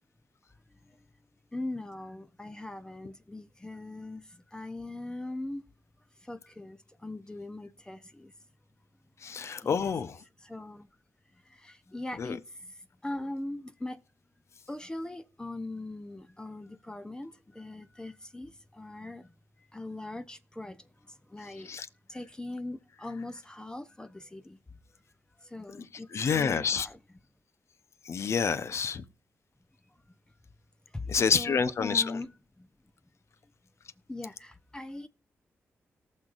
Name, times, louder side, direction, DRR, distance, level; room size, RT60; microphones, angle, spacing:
voice 1, 1.5-5.6 6.2-8.3 9.8-9.9 10.4-10.9 11.5-12.7 13.0-14.0 14.7-19.3 19.7-20.8 21.1-21.7 22.1-24.6 25.4-27.0 30.9-32.3 32.6-32.7 34.1-35.1, left 2 dB, 15° left, 0.7 m, -40 dB
voice 2, 9.2-10.2 12.2-12.4 21.7-21.9 25.8-25.9 26.1-26.9 28.0-29.0 31.1-32.2, left 6 dB, 65° left, 0.8 m, -28 dB
18.5 x 6.4 x 2.5 m
cardioid pair, 75°, 5 cm